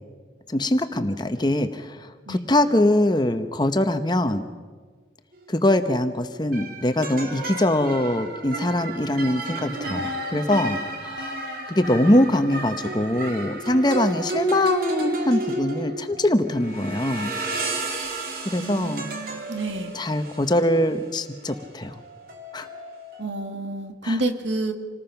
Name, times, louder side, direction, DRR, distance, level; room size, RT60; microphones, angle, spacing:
voice 1, 0.5-4.4 5.5-11.3 11.7-17.3 18.5-19.1 19.9-22.0 22.5-22.7 24.0-24.2, left 1 dB, 25° left, 9 dB, 0.9 m, -23 dB
sound 1, 5.4-5.6 6.5-23.2, right 2 dB, 50° right, 3.0 m, -32 dB
voice 2, 18.6-19.9 23.2-24.7, right 2 dB, 80° right, 6 dB, 2.1 m, -29 dB
27.0 x 19.5 x 5.9 m, 1.5 s
head